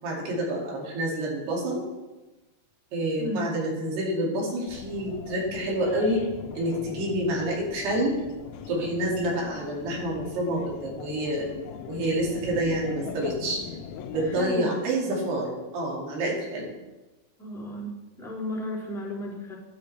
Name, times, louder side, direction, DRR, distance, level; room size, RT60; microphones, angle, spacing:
voice 1, 0.0-1.8 2.9-6.2 6.5-8.1 8.7-11.5 11.9-13.6 14.1-16.7, right 1 dB, 80° right, -3 dB, 4.5 m, -28 dB
voice 2, 3.2-3.5 14.2-14.7 17.4-19.6, left 1 dB, ahead, -10 dB, 3.9 m, -34 dB
sound 1, 4.7-14.5, left 7 dB, 85° left, 2.9 m, -40 dB
12.5 x 11.5 x 3.3 m, 1.1 s
omnidirectional pair, 4.7 m